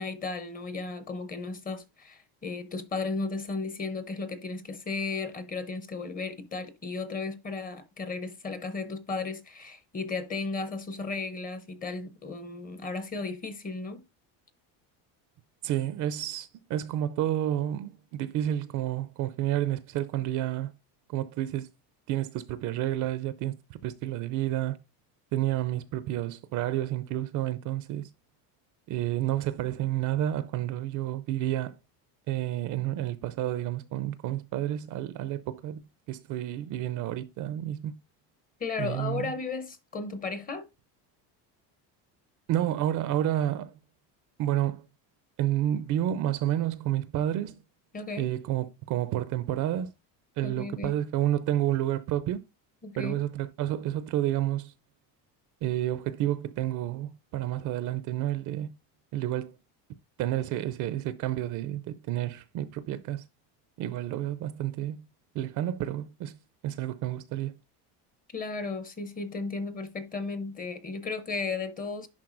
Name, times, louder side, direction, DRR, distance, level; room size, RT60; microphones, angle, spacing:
voice 1, 0.0-14.0 38.6-40.7 47.9-48.4 50.4-50.9 52.8-53.2 68.3-72.1, left 3 dB, 20° left, 0.7 m, -35 dB
voice 2, 15.6-20.7 21.1-21.7 22.1-24.8 25.3-28.1 28.9-31.8 32.3-35.8 36.1-38.0 38.8-39.3 42.5-43.7 44.4-44.8 45.4-47.6 48.2-49.9 50.4-52.4 53.0-54.7 55.6-58.7 59.1-59.6 60.2-63.2 63.8-65.0 65.3-66.4 66.6-67.5, right 12 dB, 50° right, 0.5 m, -30 dB
10.5 x 3.7 x 2.5 m
cardioid pair, 150°, 41 cm